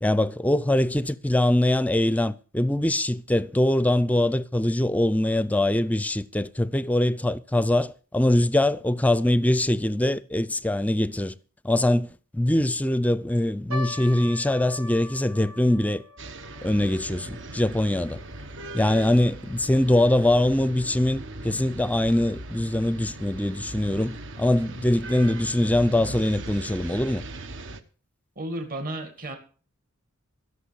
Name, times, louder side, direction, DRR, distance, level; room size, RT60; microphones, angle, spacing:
voice 1, 0.0-11.4 11.6-16.0 16.6-18.2 18.7-27.2, left 1 dB, 5° left, 0.5 m, -23 dB
sound 1, 13.7-20.2 20.5-20.6 21.3-21.6 22.2-22.3 22.6-22.8, left 2 dB, 80° right, 1.8 m, -43 dB
sound 2, 16.2-27.8, right 2 dB, 60° right, 1.3 m, -39 dB
voice 2, 28.4-29.4, right 1 dB, 40° right, 2.3 m, -33 dB
16.0 x 6.8 x 7.0 m
head